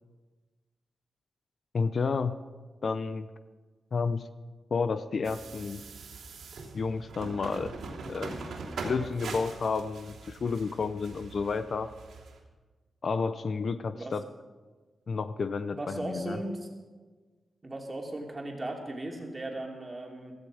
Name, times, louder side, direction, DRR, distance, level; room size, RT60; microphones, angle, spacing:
voice 1, 1.7-2.4 2.8-3.3 3.9-4.3 4.7-5.9 6.7-7.7 8.1-8.5 8.8-11.9 13.0-14.2 15.1-16.4, left 4 dB, 50° left, 12 dB, 0.5 m, -31 dB
sound 1, 5.2-12.4, right 3 dB, 85° right, 3.2 m, -42 dB
voice 2, 15.7-16.7 17.6-20.3, right 1 dB, 25° right, 0 dB, 2.8 m, -37 dB
15.5 x 14.0 x 5.0 m, 1.4 s
cardioid pair, 100°, 0 cm